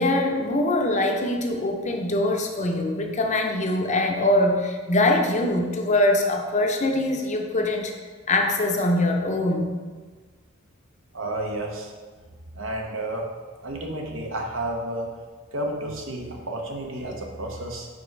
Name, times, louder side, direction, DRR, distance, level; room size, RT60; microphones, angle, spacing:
voice 1, 0.0-7.9 8.3-9.8, left 1 dB, 35° left, 3 dB, 0.7 m, -23 dB
voice 2, 11.1-11.9 12.5-13.3 13.6-15.1 15.5-17.9, right 1 dB, 70° right, 0 dB, 1.0 m, -31 dB
5.1 x 4.8 x 4.6 m, 1.4 s
head